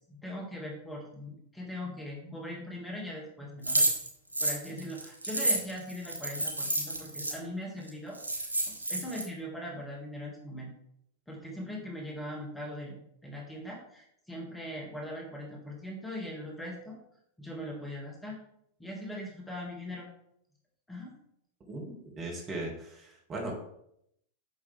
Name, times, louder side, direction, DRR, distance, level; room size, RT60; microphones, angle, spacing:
voice 1, 0.1-3.9 4.4-8.5 8.9-10.7 11.3-17.0 17.4-18.3 18.8-20.1 20.9-21.1, left 1 dB, 5° left, -2 dB, 2.3 m, -40 dB
sound 1, 3.6-7.3 7.9-8.0 8.1-9.2, right 2 dB, 90° left, 1.7 m, -30 dB
voice 2, 21.7-23.5, right 2 dB, 25° right, -2 dB, 2.4 m, -38 dB
8.6 x 6.2 x 3.5 m, 0.74 s
figure-of-eight pair, 90°, 0 cm